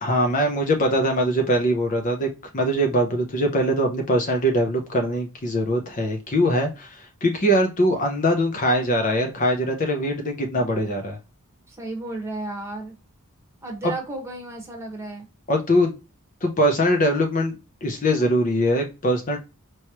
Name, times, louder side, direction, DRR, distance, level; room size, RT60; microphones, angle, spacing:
voice 1, 0.0-11.2 13.8-13.9 15.5-16.0 16.4-17.5 17.8-19.4, equal, 35° left, 3 dB, 0.6 m, -22 dB
voice 2, 11.7-13.0 13.6-15.3, right 2 dB, 10° right, 1 dB, 1.3 m, -33 dB
4.6 x 3.1 x 2.9 m, 0.28 s
head